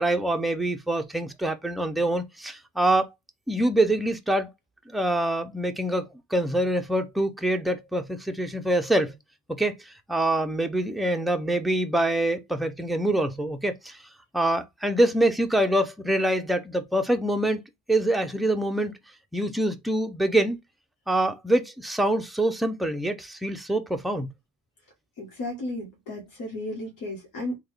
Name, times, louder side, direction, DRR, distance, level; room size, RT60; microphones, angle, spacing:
voice 1, 0.0-3.1 3.5-4.5 4.9-9.1 9.5-14.0 14.3-17.6 17.9-19.0 19.3-20.6 21.1-24.3, right 1 dB, ahead, 0.4 m, -25 dB
voice 2, 25.2-27.6, left 1 dB, 70° left, 1.2 m, -34 dB
3.6 x 2.2 x 3.2 m
cardioid pair, 105°, 34 cm